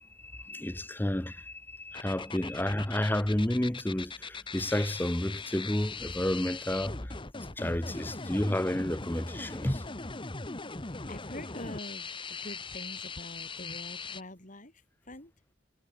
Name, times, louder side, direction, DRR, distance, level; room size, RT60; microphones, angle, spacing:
voice 1, 0.0-7.2 7.6-9.8, left 1 dB, 10° left, 0.8 m, -31 dB
sound 1, 1.9-14.2, left 4 dB, 25° left, 1.3 m, -40 dB
voice 2, 7.5-8.3 10.9-14.7 15.0-15.3, left 1 dB, 40° left, 4.9 m, -45 dB
head